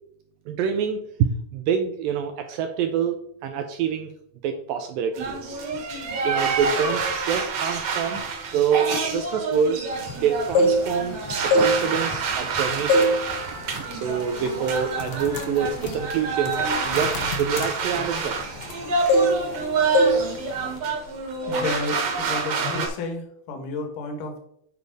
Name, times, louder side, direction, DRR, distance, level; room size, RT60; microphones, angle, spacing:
voice 1, 0.5-4.1 4.4-5.6 6.2-8.2 8.5-9.8 10.1-11.2 11.4-13.1 13.9-18.6, right 7 dB, 80° right, 6 dB, 2.1 m, -26 dB
sound 1, 5.1-22.9, right 4 dB, 55° right, 1.9 m, -28 dB
sound 2, 10.3-11.1 11.4-12.5 12.9-13.2 13.6-13.8 14.5-14.6 14.9-18.8 19.1-19.6 19.9-20.2 20.5-20.8, equal, 85° left, 2.8 m, -22 dB
voice 2, 21.5-24.4, left 2 dB, 60° left, 4 dB, 2.7 m, -32 dB
8.7 x 4.7 x 5.3 m, 0.69 s
omnidirectional pair, 4.6 m